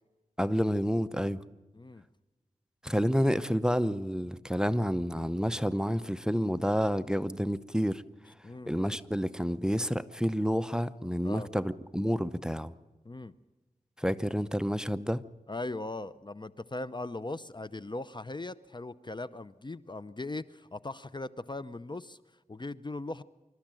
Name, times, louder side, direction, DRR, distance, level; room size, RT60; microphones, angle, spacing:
voice 1, 0.4-1.4 2.8-8.0 8.7-12.7 14.0-15.2, equal, 5° right, 14 dB, 0.8 m, -29 dB
voice 2, 1.7-2.0 8.4-8.7 11.2-11.5 13.0-13.3 15.5-22.2 22.5-23.2, left 2 dB, 30° left, 15 dB, 0.7 m, -39 dB
26.5 x 13.0 x 9.0 m, 1.2 s
wide cardioid pair, 60°, 14 cm